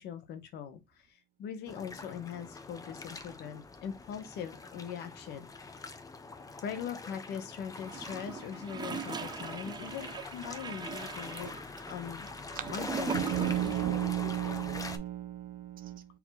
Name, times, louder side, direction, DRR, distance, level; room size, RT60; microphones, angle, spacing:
voice 1, 0.0-5.8 6.6-11.6 11.9-12.3 12.7-14.6, left 8 dB, 75° left, 1.1 m, -41 dB
sound 1, 1.7-15.0, left 3 dB, 20° left, 0.7 m, -44 dB
Gurgling / Toilet flush, 7.9-13.9 14.2-14.3, right 5 dB, 25° right, 0.5 m, -40 dB
voice 2, 13.1-16.0, right 12 dB, 55° right, 0.8 m, -33 dB
4.3 x 2.8 x 4.0 m
cardioid pair, 110°, 17 cm